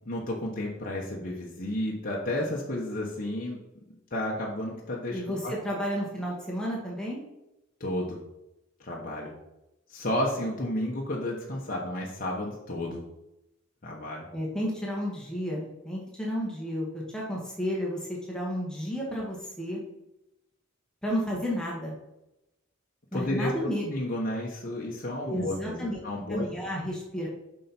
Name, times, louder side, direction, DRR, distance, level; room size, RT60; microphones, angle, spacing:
voice 1, 0.0-3.6 4.1-5.8 7.8-8.2 8.8-9.3 9.9-13.0 13.8-14.3 23.1-26.5, left 1 dB, 40° left, -3 dB, 1.1 m, -32 dB
voice 2, 5.1-7.2 14.3-19.8 21.0-22.0 23.1-23.8 25.3-26.0 26.3-27.3, equal, 5° left, -4 dB, 1.8 m, -32 dB
7.2 x 5.6 x 4.4 m, 0.92 s
head